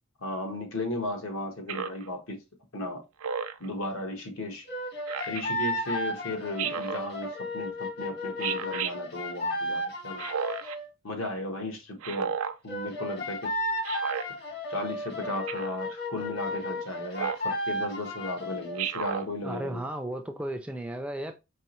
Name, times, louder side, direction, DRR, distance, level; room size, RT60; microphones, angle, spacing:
voice 1, 0.2-2.4 2.7-3.0 3.6-4.7 5.3-10.3 11.0-12.3 12.6-13.5 14.7-19.8, left 1 dB, 75° left, 1.2 m, -35 dB
Speech synthesizer, 1.7-2.1 3.2-3.7 5.1-5.4 6.6-7.0 8.4-8.9 10.2-10.8 12.0-12.6 13.8-14.3 15.5-15.8 17.1-17.5 18.8-19.3, right 7 dB, 80° right, 0.4 m, -32 dB
sound 1, 4.7-10.9 12.7-18.9, left 1 dB, 50° left, 1.2 m, -33 dB
voice 2, 19.4-21.3, right 1 dB, 5° right, 0.3 m, -34 dB
4.7 x 2.9 x 3.0 m
head